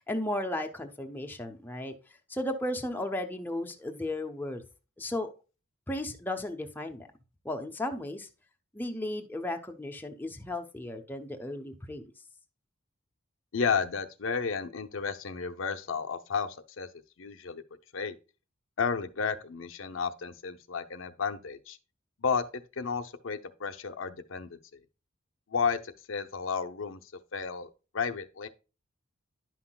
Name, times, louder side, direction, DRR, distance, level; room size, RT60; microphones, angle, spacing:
voice 1, 0.0-1.9 2.3-4.6 5.0-5.3 5.9-7.1 7.4-8.3 8.7-12.1, left 1 dB, 10° left, 0.7 m, -35 dB
voice 2, 13.5-16.9 17.2-17.6 17.9-18.1 18.8-21.8 22.2-24.6 25.5-27.0 27.3-28.5, left 5 dB, 75° left, 0.6 m, -32 dB
10.5 x 5.8 x 2.3 m
head